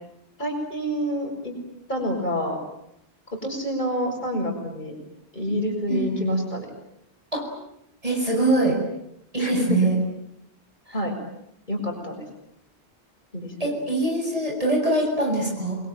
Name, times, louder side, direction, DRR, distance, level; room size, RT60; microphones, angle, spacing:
voice 1, 0.4-1.5 1.9-2.6 3.3-5.0 5.3-6.7 9.4-9.9 10.9-11.2 11.7-12.2 13.3-13.7, equal, 40° left, 2 dB, 7.0 m, -28 dB
voice 2, 5.9-6.3 7.3-7.5 8.0-8.8 9.3-10.0 13.6-15.8, right 2 dB, 30° right, 1 dB, 7.5 m, -23 dB
28.5 x 22.5 x 9.3 m, 0.77 s
omnidirectional pair, 1.1 m